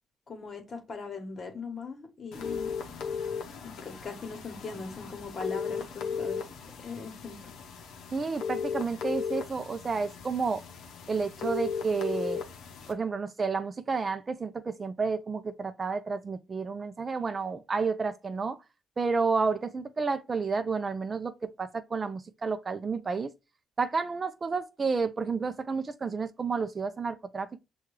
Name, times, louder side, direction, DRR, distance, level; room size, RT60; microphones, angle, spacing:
voice 1, 0.3-2.7 3.6-6.4 6.8-7.4, left 4 dB, 45° left, 1.2 m, -39 dB
sound 1, 2.3-12.9, left 6 dB, 85° left, 0.6 m, -36 dB
voice 2, 8.1-10.6 11.1-12.4 12.9-18.6 19.0-23.3 23.8-27.6, right 4 dB, 35° right, 0.4 m, -31 dB
5.8 x 2.3 x 3.1 m
cardioid pair, 90°, 0 cm